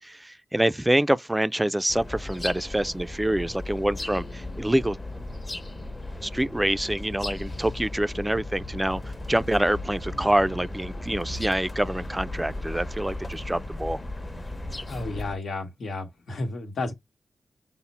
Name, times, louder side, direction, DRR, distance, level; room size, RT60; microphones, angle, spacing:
voice 1, 0.0-5.0 6.2-14.0, right 1 dB, 10° right, 0.3 m, -26 dB
sound 1, 1.9-15.4, left 2 dB, 30° left, 0.9 m, -36 dB
voice 2, 14.9-16.9, left 2 dB, 80° left, 1.2 m, -32 dB
5.6 x 2.0 x 4.1 m
cardioid pair, 70°, 0 cm